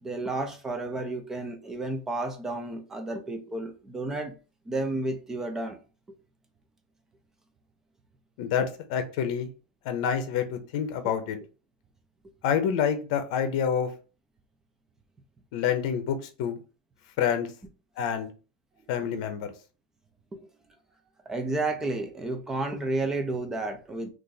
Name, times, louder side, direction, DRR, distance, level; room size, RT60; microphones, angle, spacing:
voice 1, 0.0-4.4 4.7-5.8 20.3-20.4 21.3-24.1, right 2 dB, 10° right, 0.5 m, -31 dB
voice 2, 8.4-9.5 9.8-11.4 12.4-13.9 15.5-16.6 17.2-17.5 18.0-18.3 18.9-19.5, left 8 dB, 60° left, 0.6 m, -27 dB
2.5 x 2.5 x 3.9 m
supercardioid pair, 150°, 4 cm